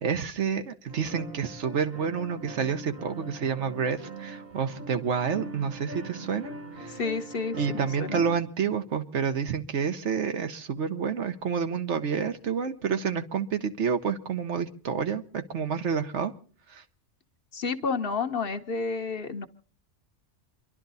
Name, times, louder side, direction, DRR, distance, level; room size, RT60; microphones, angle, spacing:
voice 1, 0.0-7.0 7.5-16.3 16.7-16.8, right 6 dB, 75° right, 8 dB, 1.3 m, -29 dB
sound 1, 0.9-8.4, right 2 dB, 55° right, 1.6 m, -41 dB
voice 2, 6.9-8.2 17.5-19.5, left 4 dB, 55° left, 7 dB, 1.0 m, -30 dB
28.0 x 11.5 x 4.1 m, 0.43 s
omnidirectional pair, 1.2 m